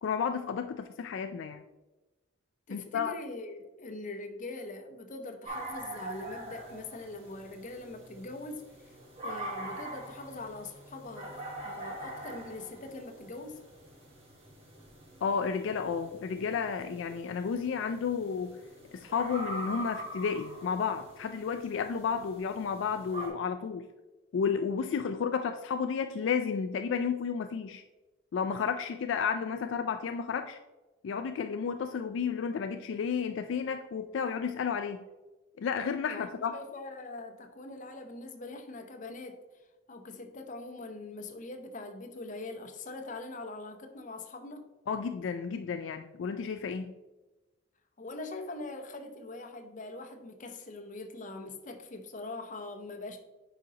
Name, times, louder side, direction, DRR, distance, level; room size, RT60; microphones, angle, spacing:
voice 1, 0.0-1.6 2.7-3.2 15.2-18.6 18.9-23.9 24.3-27.8 28.3-30.6 31.0-35.0 35.6-36.6 44.9-46.9, left 6 dB, 70° left, 0.3 m, -32 dB
voice 2, 2.7-13.6 36.1-39.4 39.9-44.7 48.0-53.2, left 2 dB, 40° left, 0.7 m, -42 dB
sound 1, 5.4-23.3, right 1 dB, 30° right, 1.7 m, -44 dB
8.8 x 5.0 x 2.8 m
head